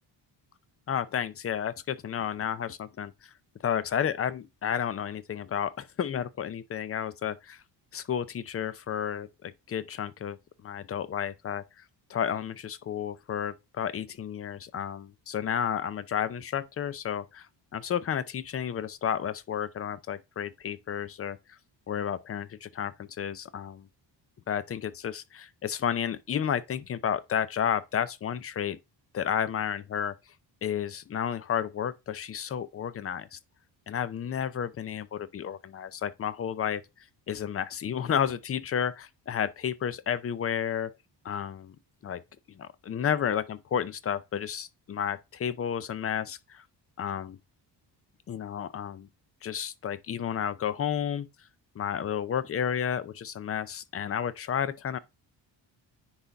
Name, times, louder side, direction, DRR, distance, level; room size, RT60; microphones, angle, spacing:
voice 1, 0.9-3.3 3.6-7.6 7.9-11.6 12.1-21.6 21.9-23.9 24.5-28.8 29.1-30.2 30.6-33.4 33.9-36.8 37.3-40.9 41.2-41.8 42.0-42.2 42.5-46.6 47.0-47.4 48.3-49.1 49.4-51.3 51.8-55.0, left 8 dB, 35° left, 0.5 m, -32 dB
9.7 x 4.1 x 3.4 m
cardioid pair, 155°, 43 cm